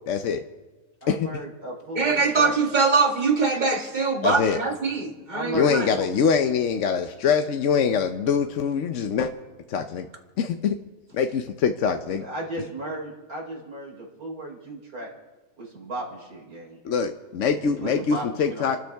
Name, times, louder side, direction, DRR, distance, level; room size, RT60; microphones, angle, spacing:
voice 1, 0.1-0.4 1.1-1.3 4.2-4.6 5.5-9.3 9.7-10.1 10.4-10.8 11.1-12.3 16.8-18.8, left 6 dB, 60° left, 7 dB, 1.0 m, -24 dB
voice 2, 1.0-2.5 5.3-6.1 12.1-15.1 15.6-16.8 17.6-18.8, right 1 dB, 75° right, -2 dB, 4.4 m, -35 dB
voice 3, 2.0-5.9, right 4 dB, 30° right, 3 dB, 1.7 m, -23 dB
29.0 x 12.5 x 3.5 m, 1.2 s
omnidirectional pair, 1.6 m